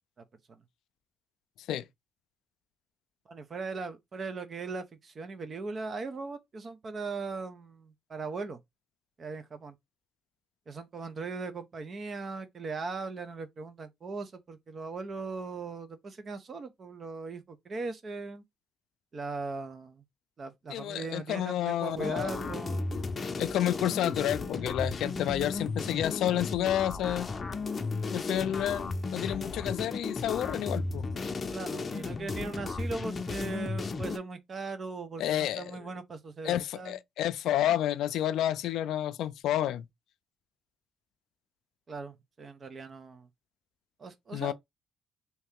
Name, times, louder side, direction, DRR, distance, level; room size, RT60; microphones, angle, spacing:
voice 1, 0.2-0.6 3.3-8.6 9.2-9.8 10.7-18.4 19.1-20.0 20.4-22.9 31.5-37.0 41.9-43.3 44.0-44.5, right 4 dB, 45° right, 0.7 m, -39 dB
voice 2, 20.7-22.3 23.4-27.3 28.1-31.1 35.2-35.7 36.4-39.9 44.3-44.5, left 12 dB, 80° left, 0.4 m, -30 dB
sound 1, 22.0-34.2, left 3 dB, 35° left, 0.6 m, -34 dB
2.9 x 2.8 x 3.5 m
cardioid pair, 90°, 0 cm